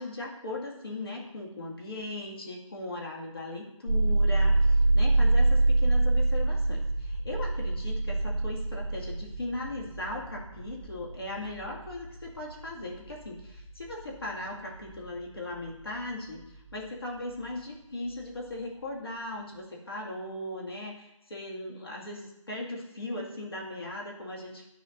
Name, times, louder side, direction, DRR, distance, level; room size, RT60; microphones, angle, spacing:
voice 1, 0.0-16.4 16.7-24.7, left 2 dB, 45° left, -2 dB, 2.1 m, -38 dB
sound 1, 3.9-17.7 18.0-18.9, right 2 dB, 50° right, 1.4 m, -28 dB
13.0 x 4.9 x 2.6 m, 0.88 s
figure-of-eight pair, 175°, 17 cm